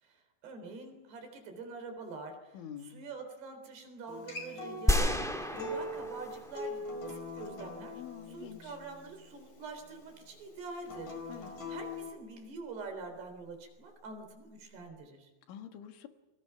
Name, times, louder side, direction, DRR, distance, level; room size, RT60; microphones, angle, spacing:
voice 1, 0.0-8.0 8.3-11.1 11.4-15.3, right 3 dB, 60° right, 5 dB, 5.7 m, -45 dB
voice 2, 2.5-3.0 7.9-8.7 11.3-11.5 15.5-16.1, left 9 dB, 85° left, 6 dB, 4.1 m, -46 dB
Acoustic guitar, 4.1-9.3 10.8-12.1, left 2 dB, 45° left, 6.4 m, -42 dB
sound 1, 4.9-7.1, equal, ahead, 0.7 m, -31 dB
30.0 x 24.0 x 5.9 m, 1.1 s
omnidirectional pair, 5.3 m